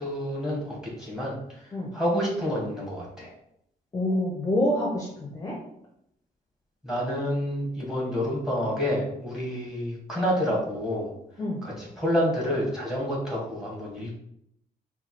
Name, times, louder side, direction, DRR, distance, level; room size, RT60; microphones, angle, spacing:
voice 1, 0.0-3.3 6.8-11.1 11.6-14.1, equal, 5° right, -3 dB, 1.4 m, -29 dB
voice 2, 3.9-5.6 11.4-11.6, left 1 dB, 20° left, -2 dB, 0.7 m, -27 dB
4.4 x 2.3 x 4.4 m, 0.75 s
wide cardioid pair, 165°, 16 cm